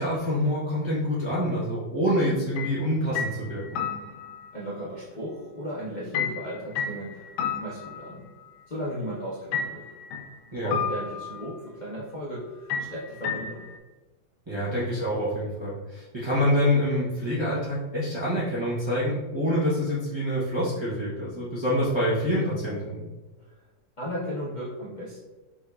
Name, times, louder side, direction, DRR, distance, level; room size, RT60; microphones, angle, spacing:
voice 1, 0.0-3.8 10.5-10.7 14.5-23.0, equal, 45° right, -10 dB, 0.3 m, -26 dB
sound 1, 2.6-2.8 3.2-4.5 6.1-8.5 9.5-10.3 10.7-11.5 12.7-13.8, left 6 dB, 80° left, 1.4 m, -32 dB
voice 2, 4.5-8.3 8.7-9.9 10.6-13.7 23.5-23.6 24.0-25.2, equal, 55° left, -7 dB, 0.5 m, -35 dB
5.3 x 3.1 x 2.3 m, 1.1 s
omnidirectional pair, 2.2 m